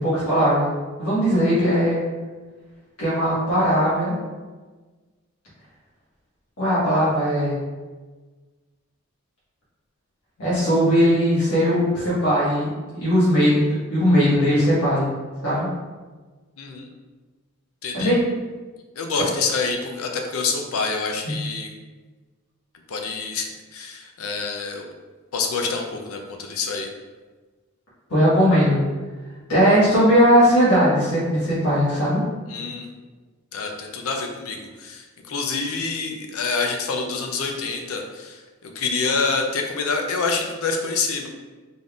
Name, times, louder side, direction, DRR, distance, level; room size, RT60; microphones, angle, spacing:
voice 1, 0.0-0.7 1.0-2.0 3.0-4.1 6.6-7.6 10.4-15.1 15.4-15.7 17.9-18.2 21.2-21.3 28.1-28.8 29.5-32.2, equal, 85° left, -10 dB, 1.4 m, -19 dB
voice 2, 16.6-16.9 17.8-18.1 18.9-21.7 22.9-24.8 25.3-26.9 32.5-32.9 33.5-41.3, left 4 dB, 70° left, 3 dB, 0.5 m, -27 dB
3.9 x 3.5 x 2.4 m, 1.3 s
head